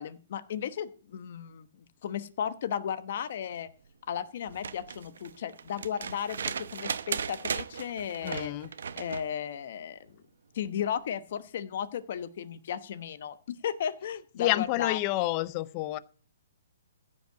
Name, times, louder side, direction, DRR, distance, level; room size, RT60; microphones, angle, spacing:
voice 1, 0.0-3.7 4.1-8.5 9.0-10.2 10.5-15.0, left 8 dB, 45° left, 1.0 m, -35 dB
sound 1, 4.4-9.3 10.9-11.0, right 6 dB, 70° right, 0.8 m, -36 dB
voice 2, 8.2-8.7 14.4-16.0, left 17 dB, 25° left, 0.5 m, -29 dB
15.0 x 5.6 x 7.9 m
hypercardioid pair, 170°, 0 cm